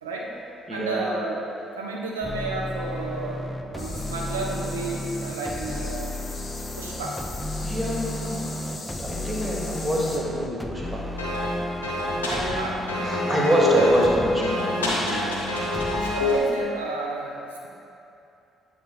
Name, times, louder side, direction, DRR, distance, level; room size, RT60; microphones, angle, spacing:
voice 1, 0.0-0.3 0.7-1.4 1.7-3.4 3.7-6.2 6.8-7.2 12.2-12.8 15.1-15.4 15.9-17.7, right 2 dB, 80° right, -2 dB, 0.6 m, -32 dB
voice 2, 0.7-1.1 7.6-11.0 13.0-15.2, equal, 20° right, -3 dB, 1.3 m, -26 dB
sound 1, 2.2-16.3, left 1 dB, 5° left, 0.5 m, -34 dB
sound 2, 3.8-10.2, left 3 dB, 35° left, 0.9 m, -40 dB
sound 3, 11.2-16.4, left 1 dB, 80° left, 0.6 m, -26 dB
7.7 x 4.2 x 3.4 m, 2.7 s
figure-of-eight pair, 45°, 0 cm